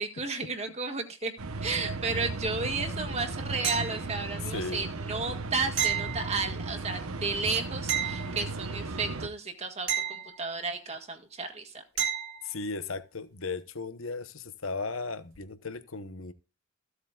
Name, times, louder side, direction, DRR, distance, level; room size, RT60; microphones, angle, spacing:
voice 1, 0.0-1.3 1.6-11.8, right 4 dB, 30° right, 4 dB, 1.7 m, -33 dB
sound 1, 1.4-9.3, right 3 dB, 85° right, 1.1 m, -36 dB
sound 2, 3.6-4.4 5.8-6.8 7.9-8.9 9.9-10.9 12.0-12.6 15.3-15.4, right 9 dB, 60° right, 2.5 m, -33 dB
voice 2, 4.3-4.9 12.4-16.3, left 4 dB, 70° left, 11 dB, 1.0 m, -36 dB
15.0 x 8.1 x 2.4 m, 0.31 s
head